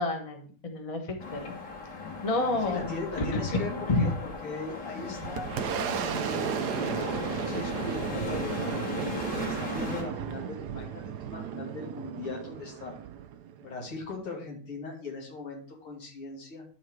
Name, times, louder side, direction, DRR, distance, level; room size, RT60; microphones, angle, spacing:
voice 1, 0.0-1.6 2.2-2.9 3.5-3.6 3.9-4.0, left 2 dB, 20° left, 3 dB, 0.9 m, -29 dB
sound 1, 1.2-10.0, left 4 dB, 55° left, 2.1 m, -37 dB
voice 2, 2.6-3.7 4.0-6.6 7.3-8.8 9.4-13.0 13.6-16.6, left 3 dB, 80° left, -1 dB, 3.3 m, -39 dB
Boom, 4.7-14.1, right 9 dB, 75° right, 0.9 m, -34 dB
11.5 x 3.9 x 4.5 m, 0.43 s
omnidirectional pair, 2.4 m